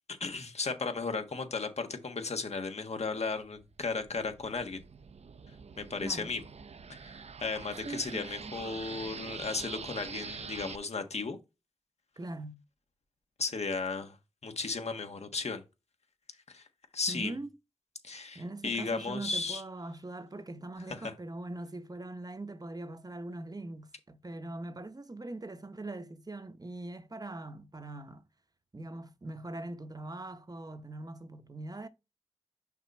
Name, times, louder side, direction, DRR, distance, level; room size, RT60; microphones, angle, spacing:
voice 1, 0.2-4.8 5.8-6.4 6.9-11.4 13.4-14.2 14.4-15.6 16.5-16.6 16.9-17.3 18.0-19.6 21.0-21.1, left 4 dB, 70° left, 1.4 m, -35 dB
sound 1, 3.4-10.8, right 5 dB, 70° right, 0.5 m, -45 dB
voice 2, 6.0-6.3 7.8-8.5 12.2-12.6 17.1-17.5 18.3-28.2 28.7-31.9, right 2 dB, 35° right, 0.8 m, -42 dB
6.0 x 4.1 x 4.3 m
cardioid pair, 40°, 12 cm